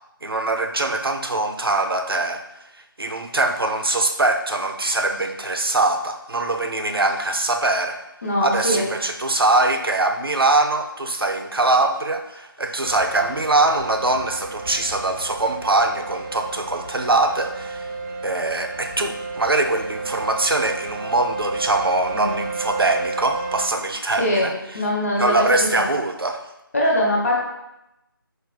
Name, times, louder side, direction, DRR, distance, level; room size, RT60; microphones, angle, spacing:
voice 1, 0.2-2.4 2.8-8.0 8.4-17.9 18.2-24.8 25.2-26.4, right 2 dB, 80° right, 5 dB, 0.5 m, -22 dB
voice 2, 8.2-8.9 22.1-22.4 24.2-24.5 24.7-25.5 25.8-25.9 26.7-27.4, left 1 dB, 40° left, -2 dB, 0.8 m, -21 dB
sound 1, 12.8-23.7, right 3 dB, 40° right, 1.1 m, -32 dB
4.2 x 3.1 x 2.2 m, 0.89 s
figure-of-eight pair, 160°, 12 cm